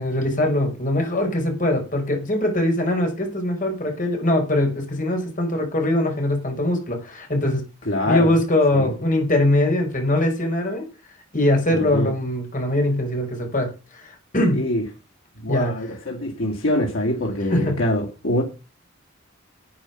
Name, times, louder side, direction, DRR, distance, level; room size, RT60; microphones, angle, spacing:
voice 1, 0.0-7.6 8.1-10.8 11.3-14.7 15.5-15.7 17.5-17.8, left 1 dB, 40° left, 5.0 m, -22 dB
voice 2, 7.9-8.3 8.7-8.9 11.7-12.1 14.5-14.8 15.4-18.4, left 1 dB, 85° left, 2.6 m, -24 dB
10.5 x 9.3 x 5.8 m
head